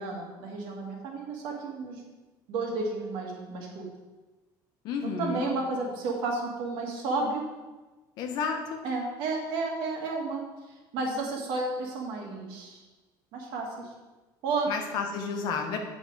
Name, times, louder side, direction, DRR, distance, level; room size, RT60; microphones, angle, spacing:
voice 1, 0.0-2.0 2.5-3.8 5.0-7.4 8.8-10.4 10.9-12.8 13.3-13.9 14.4-14.7, right 3 dB, 65° right, 0 dB, 1.9 m, -32 dB
voice 2, 4.8-5.5 8.2-8.8 14.7-15.8, left 5 dB, 55° left, 4 dB, 1.1 m, -31 dB
8.1 x 5.8 x 4.7 m, 1.2 s
cardioid pair, 180°, 9 cm